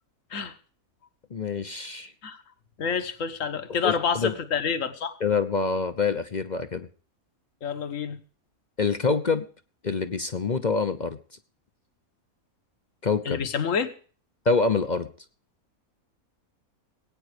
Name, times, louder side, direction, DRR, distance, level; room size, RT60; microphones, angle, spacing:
voice 1, 1.3-2.1 3.8-4.3 5.2-6.9 8.8-9.4 9.8-11.2 13.0-13.4 14.4-15.1, left 4 dB, 35° left, 9 dB, 0.8 m, -26 dB
voice 2, 2.8-5.1 7.6-8.2 13.2-13.9, left 6 dB, 65° left, 9 dB, 1.6 m, -28 dB
20.0 x 9.3 x 5.0 m, 0.42 s
omnidirectional pair, 1.5 m